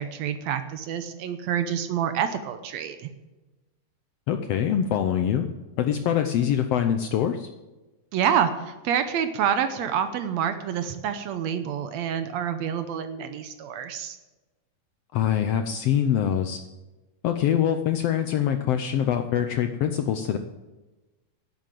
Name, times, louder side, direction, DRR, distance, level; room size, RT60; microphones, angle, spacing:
voice 1, 0.0-3.1 8.1-14.2, right 8 dB, 75° right, 9 dB, 1.9 m, -27 dB
voice 2, 4.3-5.5 5.8-7.5 15.1-16.6 17.2-20.4, left 9 dB, 75° left, 7 dB, 1.5 m, -24 dB
11.0 x 9.0 x 7.6 m, 1.1 s
omnidirectional pair, 3.5 m